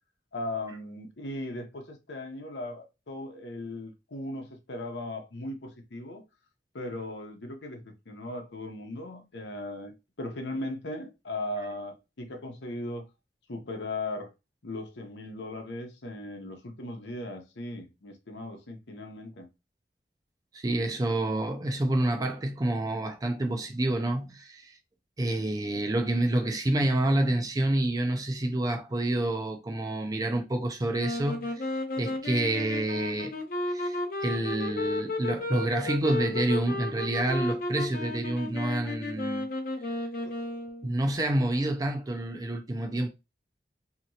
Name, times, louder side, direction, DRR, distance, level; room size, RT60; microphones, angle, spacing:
voice 1, 0.3-6.2 6.7-13.0 13.5-14.3 14.6-19.5, left 1 dB, 85° left, 0.8 m, -38 dB
voice 2, 20.5-24.7 25.2-31.7 32.0-33.3 33.7-39.5 40.8-43.1, right 1 dB, 20° right, 0.4 m, -28 dB
sound 1, 31.0-41.0, left 2 dB, 50° left, 0.7 m, -33 dB
2.9 x 2.9 x 2.7 m
head